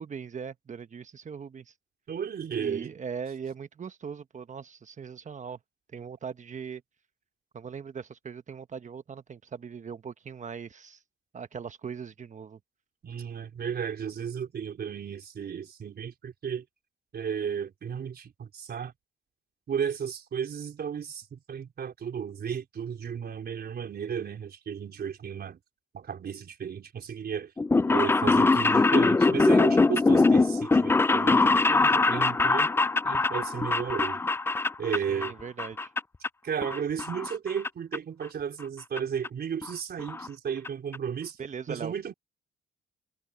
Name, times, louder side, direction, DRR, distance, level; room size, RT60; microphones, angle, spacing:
voice 1, 0.0-1.7 2.5-5.6 5.9-6.8 7.5-11.0 11.3-12.6 35.1-35.9 41.4-41.9, right 6 dB, 40° right, 1.2 m, -40 dB
voice 2, 2.1-2.9 13.0-16.6 17.1-18.9 19.7-25.6 25.9-27.5 27.9-32.7 33.0-34.2 34.8-35.4 36.4-41.4 41.7-42.1, right 7 dB, 55° right, 4.4 m, -34 dB
sound 1, 27.6-35.3 35.6-36.3 36.6-37.7 37.9-38.0 39.0-39.1 39.2-39.3 39.6-39.7 40.0-40.3 40.7-40.8 40.9-41.0, left 3 dB, 10° left, 0.3 m, -23 dB
cardioid pair, 90°, 20 cm